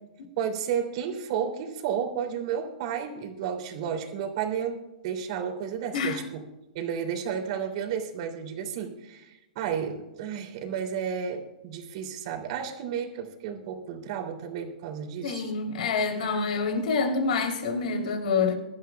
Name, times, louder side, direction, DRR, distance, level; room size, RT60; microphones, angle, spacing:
voice 1, 0.4-4.8 5.0-6.4 6.7-15.5, right 7 dB, 50° right, 2.9 m, -32 dB
voice 2, 15.2-18.5, left 4 dB, 65° left, 3.3 m, -27 dB
24.0 x 12.0 x 2.3 m
hypercardioid pair, 145°, 5 cm